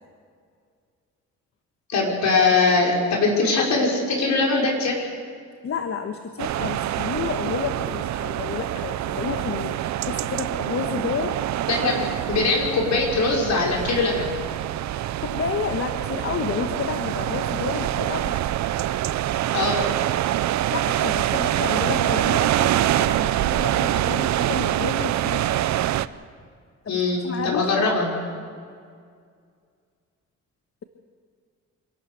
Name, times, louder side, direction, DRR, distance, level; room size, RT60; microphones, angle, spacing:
voice 1, 1.9-5.0 11.7-14.3 19.5-19.9 26.9-28.1, left 3 dB, 65° left, -1 dB, 5.5 m, -22 dB
voice 2, 5.6-11.4 15.2-18.4 20.7-25.4 26.8-28.0, left 6 dB, 50° left, 6 dB, 1.3 m, -30 dB
sound 1, 6.4-26.1, right 13 dB, 65° right, 0.6 m, -25 dB
26.0 x 12.0 x 8.2 m, 2.1 s
cardioid pair, 90°, 30 cm